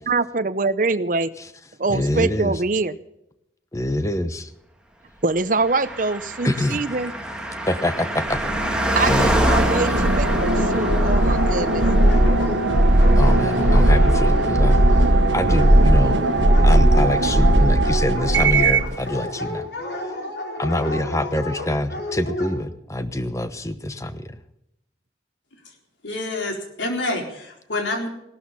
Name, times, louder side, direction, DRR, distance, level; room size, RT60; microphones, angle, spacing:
voice 1, 0.1-1.3 1.8-3.0 5.2-7.1 9.0-11.9, right 3 dB, 45° right, 14 dB, 0.8 m, -24 dB
voice 2, 1.9-2.6 3.7-4.5 6.4-6.8 7.6-8.8 9.1-9.4 13.2-14.8 15.3-16.2 16.6-19.7 20.6-24.4, left 1 dB, 15° left, 11 dB, 1.0 m, -25 dB
Car passing by, 5.6-17.4 17.7-17.8, right 1 dB, 5° right, 1.9 m, -28 dB
sound 1, 8.3-18.9, right 1 dB, 85° right, 1.3 m, -17 dB
Dog, 10.3-22.5, left 2 dB, 75° left, 4.4 m, -30 dB
voice 3, 26.0-28.1, left 2 dB, 90° left, 2 dB, 4.0 m, -27 dB
17.0 x 12.5 x 5.7 m, 0.82 s
head